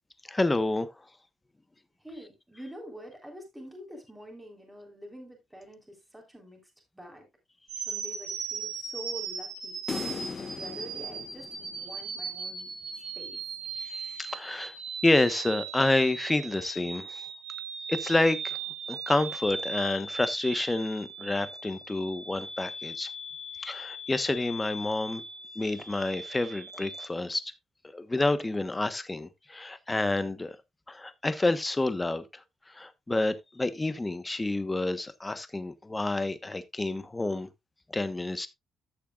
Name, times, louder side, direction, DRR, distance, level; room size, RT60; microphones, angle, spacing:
voice 1, 0.3-0.9 13.8-14.7 15.0-17.3 17.9-18.6 18.9-23.1 23.6-25.2 25.5-27.5 27.9-30.6 30.9-32.3 32.7-37.5 37.9-38.5, left 2 dB, 15° left, 1.1 m, -29 dB
voice 2, 2.0-6.6 6.9-7.3 7.9-9.8 10.4-12.7 13.2-13.4, equal, 5° right, 3.7 m, -46 dB
sound 1, 7.7-27.1, right 4 dB, 85° right, 4.2 m, -38 dB
sound 2, 9.9-12.3, left 5 dB, 40° left, 1.3 m, -38 dB
14.0 x 6.8 x 2.4 m
cardioid pair, 90°, 0 cm